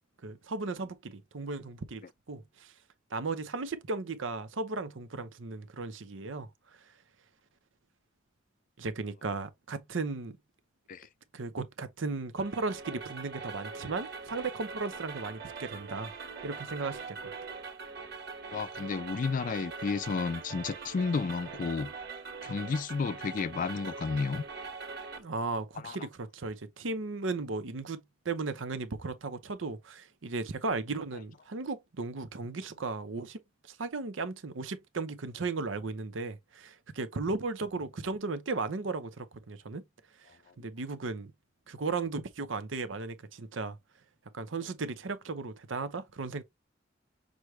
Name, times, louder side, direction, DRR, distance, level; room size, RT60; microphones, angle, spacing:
voice 1, 0.2-2.7 3.1-6.8 8.8-10.4 11.3-16.1 16.4-17.3 25.2-33.4 33.7-39.8 40.2-40.3 40.6-41.3 41.7-43.8 44.3-46.4, right 3 dB, 85° right, 0.7 m, -36 dB
sound 1, 12.4-25.2, right 4 dB, 60° right, 1.5 m, -42 dB
voice 2, 18.5-21.9 22.4-24.4 25.8-26.0, left 5 dB, 45° left, 0.3 m, -32 dB
6.3 x 2.2 x 3.1 m
head